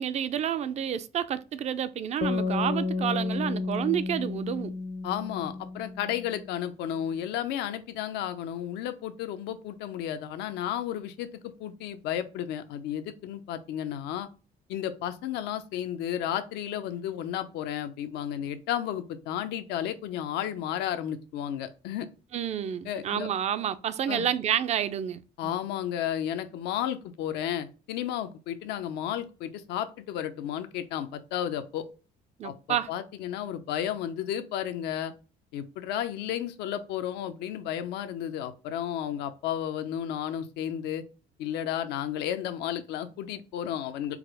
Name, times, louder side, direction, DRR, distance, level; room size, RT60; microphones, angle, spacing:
voice 1, 0.0-4.7 22.3-25.5 32.4-32.9, right 9 dB, 40° right, 0.4 m, -29 dB
sound 1, 2.2-6.4, left 3 dB, 40° left, 0.5 m, -31 dB
voice 2, 5.0-11.3 11.6-14.3 14.7-22.1 22.8-23.3 24.1-24.3 25.4-31.9 32.4-35.1 35.5-41.0 41.4-44.2, left 10 dB, 85° left, 0.6 m, -33 dB
4.8 x 2.0 x 4.7 m
cardioid pair, 110°, 17 cm